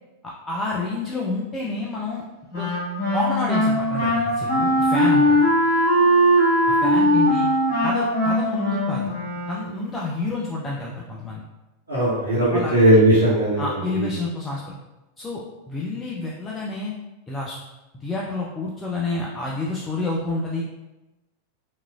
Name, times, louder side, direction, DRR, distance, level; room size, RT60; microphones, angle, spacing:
voice 1, 0.2-2.2 2.5-2.7 3.1-5.4 6.7-7.5 7.8-9.1 9.5-11.4 12.5-12.7 13.6-14.7 15.2-16.9 17.3-17.6 18.0-20.6, left 2 dB, 15° left, -4 dB, 0.4 m, -29 dB
Wind instrument woodwind instrument, 2.5-9.9, equal, 50° left, 0.9 m, -20 dB
voice 2, 11.9-14.1, right 1 dB, 85° right, -11 dB, 1.0 m, -18 dB
2.9 x 2.3 x 2.3 m, 1.0 s
figure-of-eight pair, 90°, 0 cm